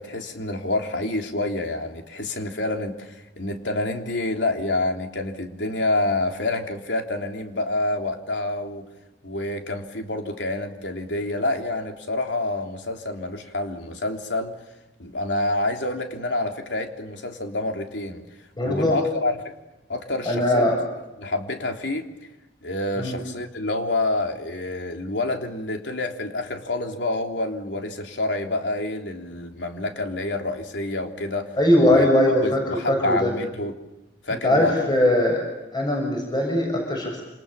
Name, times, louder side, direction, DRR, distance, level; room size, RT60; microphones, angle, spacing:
voice 1, 0.0-8.8 9.2-14.5 15.0-18.2 18.6-19.5 19.9-20.7 21.2-22.0 22.6-31.5 31.8-32.1 32.4-33.7 34.2-34.9, left 2 dB, 90° left, 3 dB, 3.5 m, -28 dB
voice 2, 18.6-19.0 20.3-20.8 23.0-23.2 31.6-33.3 34.4-35.4 35.7-37.2, left 1 dB, 25° left, 1 dB, 7.4 m, -20 dB
28.5 x 28.0 x 7.1 m, 1.0 s
head